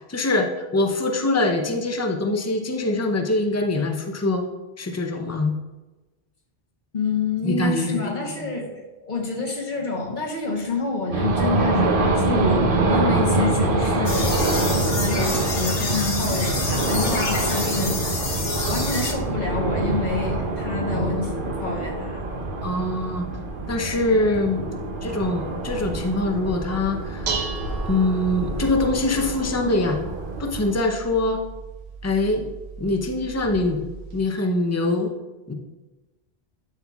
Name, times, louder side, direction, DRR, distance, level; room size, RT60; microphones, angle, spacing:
voice 1, 0.1-4.4 4.8-5.5 7.4-8.4 21.0-21.2 22.6-23.3 23.7-27.3 27.9-30.0 30.4-31.4 32.0-32.5 32.8-33.8 34.1-35.1 35.5-35.6, left 2 dB, 20° left, 3 dB, 0.6 m, -24 dB
voice 2, 6.9-14.4 14.7-22.2, left 3 dB, 50° left, 1 dB, 1.2 m, -28 dB
sound 1, 11.1-30.8, right 2 dB, 60° right, 1.0 m, -25 dB
sound 2, 14.1-19.1, left 3 dB, 75° left, 1.2 m, -29 dB
Dishes pots and pans, 26.8-34.2, right 5 dB, 80° right, 1.3 m, -36 dB
11.5 x 5.5 x 2.4 m, 1.1 s
omnidirectional pair, 1.0 m